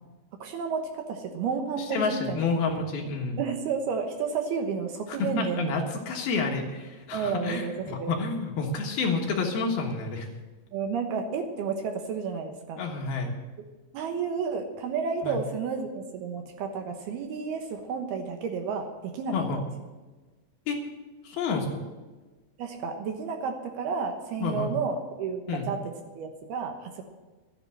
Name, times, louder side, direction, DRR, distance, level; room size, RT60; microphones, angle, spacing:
voice 1, 0.4-2.5 3.4-5.7 7.1-8.1 10.7-12.9 13.9-19.7 22.6-27.0, right 5 dB, 70° right, 5 dB, 2.9 m, -31 dB
voice 2, 1.8-3.4 5.1-10.3 12.8-13.3 15.2-15.4 19.3-19.6 20.7-20.8 21.2-21.8 24.4-24.7 25.5-25.7, left 4 dB, 65° left, 1 dB, 3.1 m, -29 dB
13.0 x 10.0 x 7.8 m, 1.3 s
omnidirectional pair, 5.1 m